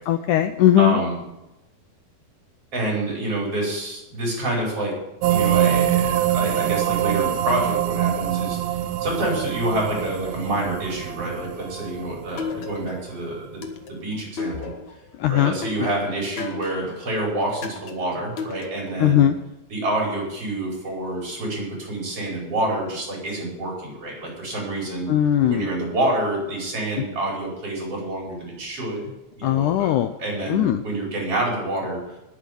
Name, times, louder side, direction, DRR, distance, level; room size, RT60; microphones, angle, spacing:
voice 1, 0.1-1.0 15.2-15.5 19.0-19.4 25.1-25.7 29.4-30.1 30.5-30.8, left 11 dB, 80° left, 9 dB, 1.8 m, -18 dB
voice 2, 0.8-1.2 2.7-4.9 5.3-13.6 13.9-14.7 15.3-19.3 19.7-25.1 25.5-29.0 29.4-29.9 30.2-32.0, right 1 dB, 40° right, -3 dB, 6.1 m, -27 dB
sound 1, 5.2-13.0, right 11 dB, 90° right, 2.6 m, -24 dB
sound 2, 12.4-13.1 13.6-15.1 15.6-17.0 17.6-19.1, left 5 dB, 60° left, 2.4 m, -34 dB
19.5 x 8.4 x 5.4 m, 0.97 s
omnidirectional pair, 4.3 m